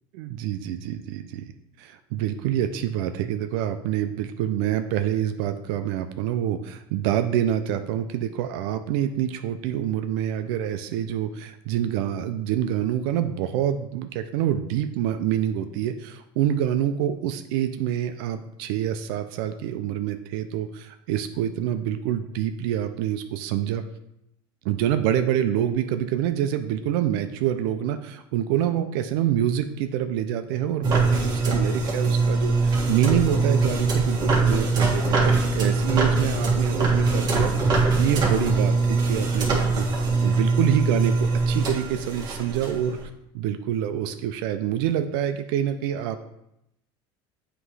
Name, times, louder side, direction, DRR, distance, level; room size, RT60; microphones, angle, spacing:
voice 1, 0.1-1.5 1.8-23.8 24.6-39.8 40.2-43.0 43.3-46.3, right 10 dB, 75° right, 8 dB, 0.5 m, -26 dB
sound 1, 30.8-43.0, right 3 dB, 35° right, 1.5 m, -22 dB
7.8 x 3.0 x 4.8 m, 0.82 s
supercardioid pair, 140°, 12 cm